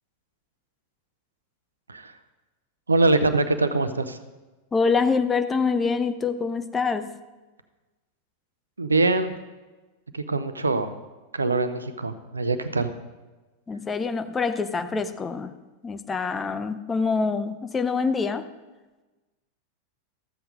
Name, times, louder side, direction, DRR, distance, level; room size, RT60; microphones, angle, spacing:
voice 1, 2.9-4.2 8.8-9.3 10.1-10.9 11.3-12.9, right 3 dB, 75° right, 11 dB, 0.7 m, -23 dB
voice 2, 4.7-7.2 13.7-15.5 15.8-18.5, left 4 dB, 15° left, 10 dB, 0.6 m, -25 dB
13.5 x 7.9 x 5.1 m, 1.2 s
figure-of-eight pair, 90°, 0 cm